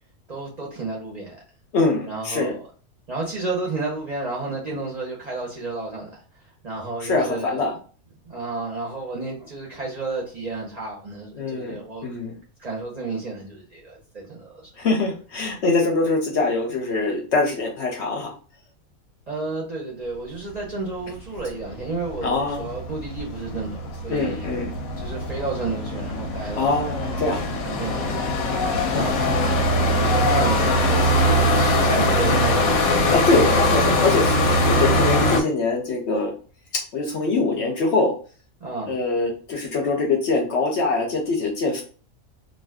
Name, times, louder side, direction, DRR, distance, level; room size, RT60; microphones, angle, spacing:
voice 1, 0.3-1.4 2.1-2.6 3.1-6.2 6.6-7.7 8.2-12.1 12.6-14.7 19.3-24.6 25.0-28.2 28.9-29.3 30.0-33.0 38.6-39.0, right 3 dB, 45° right, 0.6 m, -31 dB
voice 2, 1.7-2.5 7.0-7.7 11.4-12.3 14.8-18.3 22.2-22.7 24.1-24.7 26.5-27.4 28.9-29.1 29.9-30.1 33.1-36.3 36.9-38.1 38.9-41.8, left 3 dB, 65° left, 0.8 m, -23 dB
sound 1, 21.2-21.3 21.5-35.4, left 1 dB, 85° left, 1.0 m, -22 dB
2.5 x 2.3 x 3.4 m
omnidirectional pair, 1.5 m